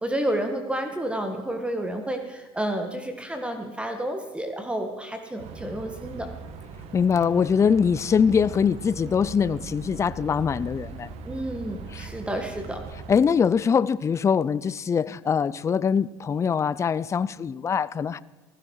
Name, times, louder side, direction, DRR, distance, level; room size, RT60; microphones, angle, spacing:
voice 1, 0.0-6.3 11.2-12.9, right 1 dB, 10° right, 1.7 m, -30 dB
sound 1, 5.4-13.2, right 5 dB, 60° right, 1.8 m, -40 dB
voice 2, 6.9-11.1 11.9-12.1 13.1-18.2, left 6 dB, 25° left, 0.5 m, -23 dB
15.5 x 15.0 x 4.7 m
supercardioid pair, 100°, 12 cm